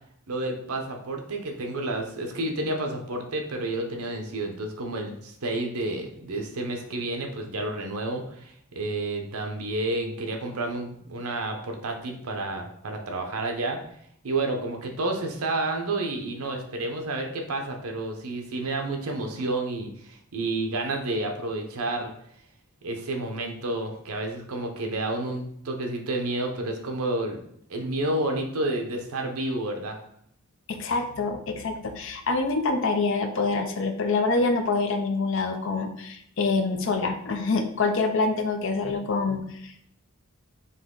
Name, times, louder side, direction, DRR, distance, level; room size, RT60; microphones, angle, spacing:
voice 1, 0.3-13.8 14.2-22.1 22.8-27.4 27.7-30.0, right 2 dB, 80° right, 3 dB, 0.8 m, -30 dB
voice 2, 30.7-39.9, left 3 dB, 55° left, 6 dB, 0.5 m, -26 dB
4.1 x 2.9 x 3.7 m, 0.69 s
head